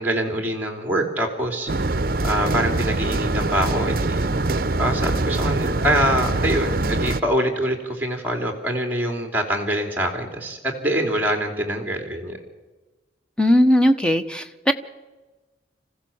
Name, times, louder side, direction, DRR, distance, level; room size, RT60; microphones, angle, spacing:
voice 1, 0.0-1.7 2.2-4.3 4.8-12.4, right 1 dB, 10° right, 4 dB, 3.0 m, -24 dB
sound 1, 1.7-7.2, right 2 dB, 50° right, 0.7 m, -23 dB
voice 2, 13.4-14.7, equal, 5° left, 8 dB, 1.1 m, -18 dB
27.5 x 15.5 x 7.2 m, 1.2 s
head